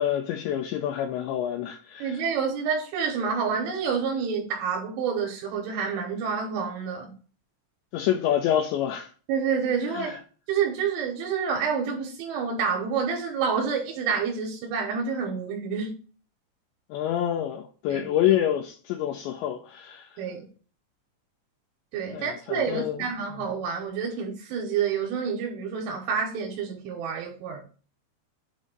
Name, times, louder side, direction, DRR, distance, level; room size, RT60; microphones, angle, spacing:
voice 1, 0.0-2.2 7.9-9.1 9.9-10.2 16.9-20.2 22.1-23.0, left 11 dB, 90° left, 2.5 m, -27 dB
voice 2, 2.0-7.1 9.3-10.2 10.5-16.0 17.9-18.0 20.2-20.4 21.9-27.6, right 6 dB, 85° right, 3.3 m, -28 dB
7.3 x 2.6 x 5.1 m
omnidirectional pair, 5.6 m